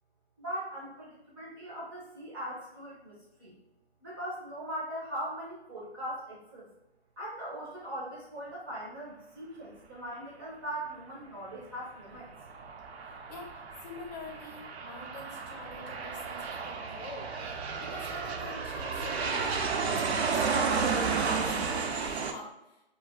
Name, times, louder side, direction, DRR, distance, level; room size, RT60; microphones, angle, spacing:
voice 1, 0.4-3.6 4.0-6.7 7.2-12.3, right 1 dB, 20° right, -6 dB, 0.4 m, -40 dB
Aircraft, 12.1-22.3, right 5 dB, 75° right, 0.5 m, -32 dB
voice 2, 13.3-23.0, left 2 dB, 40° left, 0 dB, 0.7 m, -46 dB
2.3 x 2.2 x 3.4 m, 0.92 s
hypercardioid pair, 140°, 32 cm